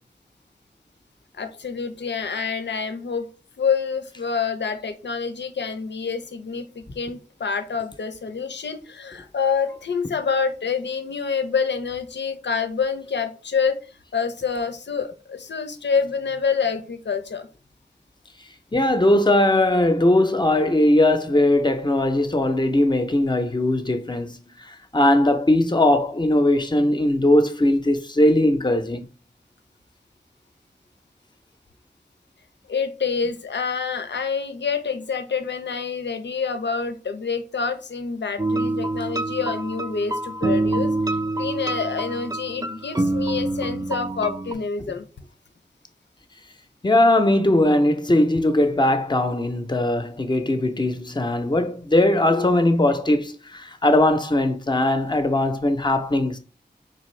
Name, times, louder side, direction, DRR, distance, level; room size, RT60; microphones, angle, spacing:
voice 1, 1.4-3.3 3.6-17.5 32.7-45.1 52.3-52.5, left 5 dB, 85° left, 0.5 m, -27 dB
voice 2, 18.7-24.4 24.6-29.1 46.8-56.4, left 1 dB, 25° left, 0.6 m, -19 dB
sound 1, 38.4-44.5, right 2 dB, 20° right, 0.4 m, -26 dB
4.0 x 2.5 x 3.1 m
wide cardioid pair, 50°, 18 cm